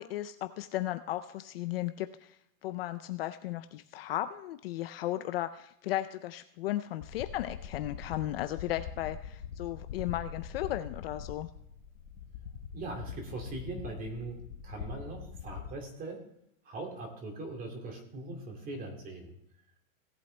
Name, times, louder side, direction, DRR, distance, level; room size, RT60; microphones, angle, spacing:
voice 1, 0.0-2.4 2.6-11.5, left 14 dB, 45° left, 10 dB, 0.5 m, -35 dB
sound 1, 7.0-15.7, left 7 dB, 80° left, 1.5 m, -43 dB
voice 2, 12.7-16.3 16.6-19.3, right 2 dB, 20° right, 2 dB, 2.4 m, -41 dB
17.5 x 8.3 x 3.3 m, 0.75 s
supercardioid pair, 165°, 41 cm